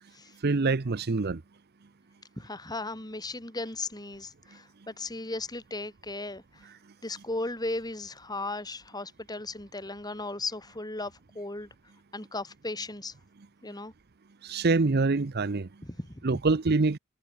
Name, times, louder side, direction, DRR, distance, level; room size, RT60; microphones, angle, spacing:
voice 1, 0.4-1.4 14.4-15.7 16.2-17.0, right 3 dB, 45° right, 0.7 m, -25 dB
voice 2, 2.4-6.4 7.0-11.7 12.1-13.1 13.6-13.9 15.8-16.3, left 2 dB, 20° left, 3.7 m, -36 dB
head